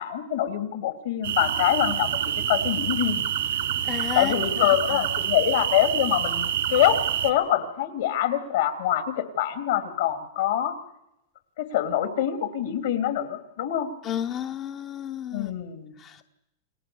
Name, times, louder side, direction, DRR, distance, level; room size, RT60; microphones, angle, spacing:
voice 1, 0.0-2.2 2.5-3.2 4.1-10.7 11.6-13.9 15.3-15.9, left 11 dB, 75° left, 9 dB, 2.9 m, -25 dB
sound 1, 1.2-7.3, right 10 dB, 80° right, 2.8 m, -27 dB
voice 2, 3.8-4.3 4.9-5.1 14.0-15.5 16.0-16.2, left 10 dB, 40° left, 6 dB, 0.9 m, -32 dB
29.0 x 19.0 x 7.2 m, 0.86 s
hypercardioid pair, 105°, 0 cm